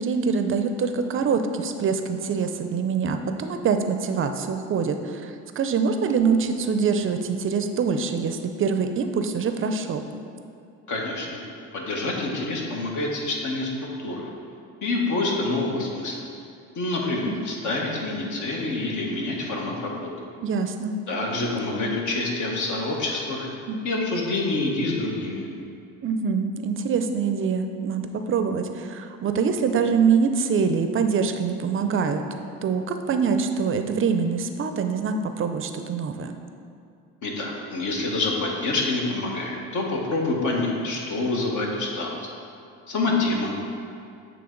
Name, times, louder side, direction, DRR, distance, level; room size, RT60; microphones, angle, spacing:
voice 1, 0.0-10.0 17.3-17.5 20.4-21.0 23.7-23.8 26.0-28.0 28.3-32.2 32.6-36.4, right 5 dB, 40° right, 7 dB, 0.5 m, -24 dB
voice 2, 10.9-11.4 11.7-14.3 14.8-16.2 16.7-20.1 21.1-23.5 23.8-25.5 37.2-42.1 42.9-43.6, left 2 dB, 60° left, -1 dB, 1.2 m, -27 dB
7.8 x 3.3 x 3.8 m, 2.4 s
supercardioid pair, 90°, 34 cm